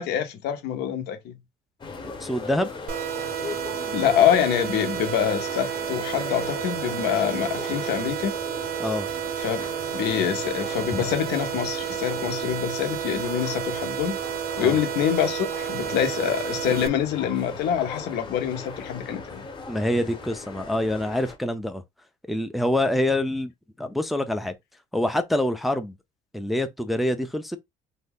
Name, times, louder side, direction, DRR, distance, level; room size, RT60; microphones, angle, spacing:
voice 1, 0.0-1.4 3.9-8.3 9.4-9.6 9.9-14.2 14.6-19.4, left 9 dB, 80° left, 0.8 m, -25 dB
sound 1, 1.8-21.4, left 3 dB, 25° left, 0.8 m, -38 dB
voice 2, 2.0-2.7 8.8-9.1 14.6-14.8 19.7-21.8 22.3-23.5 23.8-24.5 24.9-26.0 26.3-27.6, left 1 dB, ahead, 0.4 m, -26 dB
sound 2, 2.9-16.9, right 11 dB, 65° right, 0.5 m, -31 dB
2.7 x 2.2 x 3.5 m
cardioid pair, 110°, 17 cm